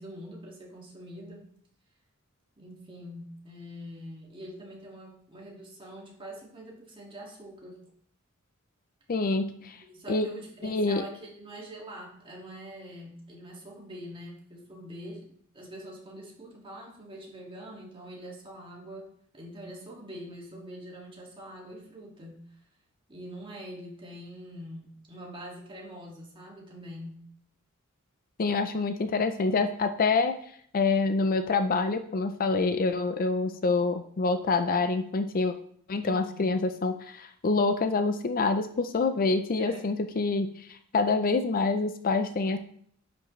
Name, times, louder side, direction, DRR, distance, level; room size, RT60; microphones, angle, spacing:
voice 1, 0.0-1.5 2.6-7.8 9.5-15.3 15.5-19.1 19.3-22.5 23.1-27.2 36.0-36.5 39.5-40.0, equal, 25° right, -2 dB, 2.1 m, -44 dB
voice 2, 9.1-9.8 10.1-10.3 10.6-11.0 28.4-30.3 30.7-35.5 35.9-42.6, left 3 dB, 40° left, 8 dB, 0.5 m, -26 dB
10.0 x 6.0 x 3.2 m, 0.62 s
head